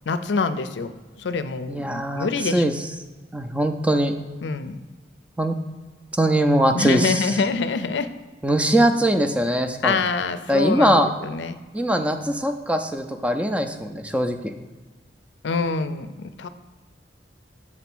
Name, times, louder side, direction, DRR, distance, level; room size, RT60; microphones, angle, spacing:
voice 1, 0.1-0.9 1.2-2.6 4.4-4.8 6.7-8.1 9.8-11.6 15.4-16.5, left 4 dB, 80° left, 11 dB, 0.5 m, -25 dB
voice 2, 1.7-2.7 3.3-4.1 5.4-5.6 6.1-7.4 8.4-10.0 10.5-11.1 11.7-14.5, right 1 dB, 5° right, 6 dB, 0.4 m, -21 dB
7.4 x 3.4 x 6.0 m, 1.3 s
head